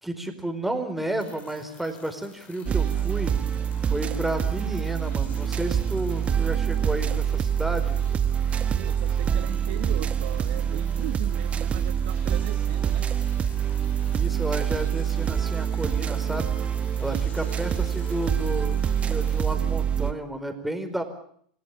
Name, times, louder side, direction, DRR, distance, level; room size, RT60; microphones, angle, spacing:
voice 1, 0.0-3.3 3.8-8.0 14.1-16.6 17.0-21.0, right 1 dB, 5° right, 7 dB, 4.8 m, -32 dB
sound 1, 1.2-19.6, left 7 dB, 35° left, 3.4 m, -51 dB
sound 2, 2.7-20.1, right 8 dB, 25° right, 1.7 m, -26 dB
voice 2, 8.7-13.1, right 17 dB, 65° right, 11 dB, 1.2 m, -38 dB
27.5 x 17.0 x 8.6 m, 0.64 s
hypercardioid pair, 100°, 4 cm